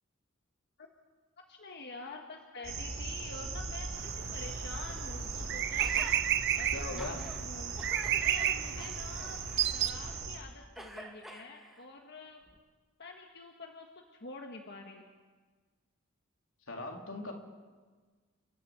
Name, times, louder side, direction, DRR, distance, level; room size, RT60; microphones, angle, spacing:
voice 1, 1.5-6.1 6.5-7.7 8.2-9.4 9.6-12.4 13.0-13.9 14.1-15.0, left 3 dB, 55° left, 2 dB, 1.6 m, -47 dB
sound 1, 2.6-10.4, right 4 dB, 80° right, 6.2 m, -39 dB
sound 2, 4.0-9.9, right 11 dB, 60° right, 0.8 m, -32 dB
Gasp, 5.8-6.2 6.7-7.4 7.8-10.3 10.8-11.8 12.5-12.6, right 1 dB, ahead, 2.2 m, -48 dB
voice 2, 6.7-7.2 16.7-17.3, left 2 dB, 80° left, 2 dB, 3.3 m, -39 dB
30.0 x 11.5 x 8.6 m, 1.4 s
head